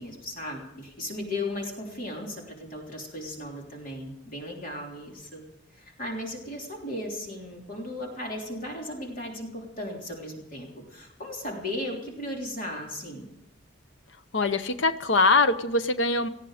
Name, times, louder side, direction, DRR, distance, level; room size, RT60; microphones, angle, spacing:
voice 1, 0.0-5.4 5.7-13.3, left 1 dB, 45° left, 0 dB, 3.3 m, -36 dB
voice 2, 14.3-16.3, left 3 dB, 70° left, 11 dB, 0.8 m, -23 dB
19.0 x 13.5 x 5.0 m, 0.88 s
head